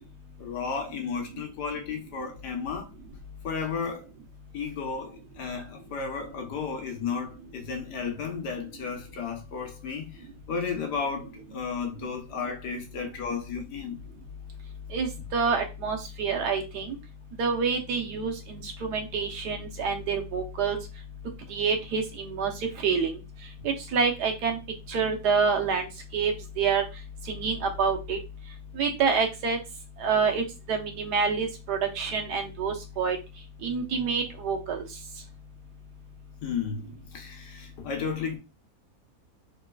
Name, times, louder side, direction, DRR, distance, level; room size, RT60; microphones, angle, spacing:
voice 1, 0.4-2.9 3.4-4.1 4.5-10.2 10.5-14.0 36.4-36.8 37.1-38.4, left 5 dB, 85° left, 1.5 m, -33 dB
voice 2, 14.9-17.0 17.4-20.8 21.5-22.5 22.8-23.2 23.6-24.6 24.9-25.9 26.1-26.8 27.3-28.2 28.8-29.6 30.0-33.2 33.6-34.8, right 5 dB, 80° right, 1.4 m, -27 dB
3.9 x 3.2 x 2.3 m
omnidirectional pair, 1.7 m